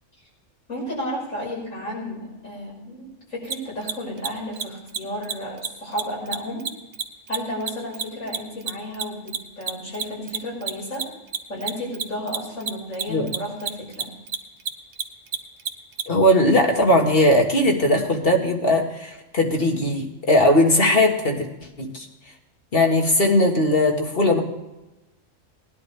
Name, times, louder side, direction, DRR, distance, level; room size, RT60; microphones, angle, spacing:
voice 1, 0.7-6.6 7.3-11.0 11.5-14.1, equal, 80° left, -4 dB, 6.5 m, -32 dB
Mechanisms, 3.4-3.5 3.8-3.9 4.2-4.3 4.5-4.6 4.9-5.0 5.2-5.3 5.6-5.7 6.0-8.7 8.9-16.0, right 7 dB, 65° right, 1.2 m, -28 dB
voice 2, 16.1-21.5 21.8-22.1 22.7-24.4, left 1 dB, 45° left, 2 dB, 2.0 m, -19 dB
19.5 x 11.0 x 3.4 m, 1.0 s
omnidirectional pair, 1.3 m